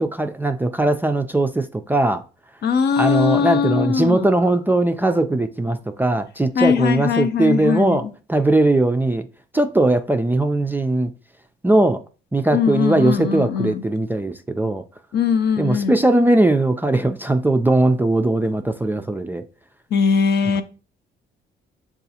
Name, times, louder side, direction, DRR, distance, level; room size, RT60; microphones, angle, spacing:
voice 1, 0.0-2.2 3.0-9.3 9.5-11.1 11.6-12.0 12.3-14.8 15.6-19.4 20.6-20.7, right 2 dB, 10° right, 0.3 m, -19 dB
voice 2, 2.6-4.2 6.6-8.1 12.5-13.8 15.1-16.0 19.9-20.6, left 6 dB, 55° left, 0.5 m, -20 dB
6.6 x 2.4 x 2.8 m
cardioid pair, 90°, 20 cm